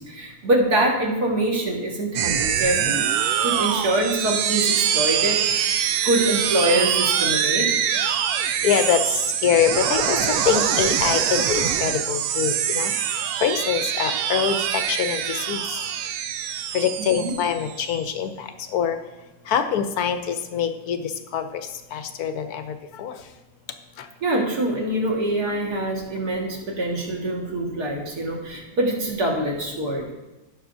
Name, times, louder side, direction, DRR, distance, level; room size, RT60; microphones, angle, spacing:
voice 1, 0.0-3.1 3.4-5.8 6.0-7.8 17.2-17.3 24.2-30.1, right 1 dB, 55° right, -1 dB, 2.2 m, -24 dB
sound 1, 2.1-18.0, right 9 dB, 75° right, 0.8 m, -24 dB
voice 2, 8.6-9.0 9.4-10.2 10.5-12.9 13.4-15.2 15.5-15.6 16.7-18.3 18.7-19.0 19.5-21.0 21.3-21.4 21.9-22.6 23.0-23.1, left 8 dB, 65° left, 8 dB, 1.0 m, -23 dB
17.0 x 6.1 x 2.6 m, 1.1 s
omnidirectional pair, 2.0 m